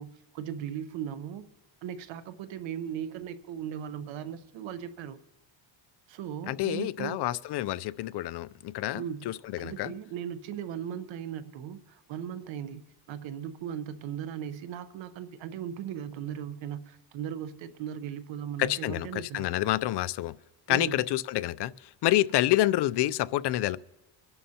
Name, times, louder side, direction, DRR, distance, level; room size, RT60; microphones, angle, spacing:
voice 1, 0.0-1.5 1.8-5.2 6.1-7.2 8.9-9.3 9.6-12.8 13.1-19.5 20.7-21.0, right 9 dB, 90° right, 1.0 m, -38 dB
voice 2, 6.5-9.9 18.6-20.3 20.7-23.8, left 15 dB, 65° left, 0.5 m, -28 dB
24.5 x 11.0 x 2.8 m
cardioid pair, 135°, 44 cm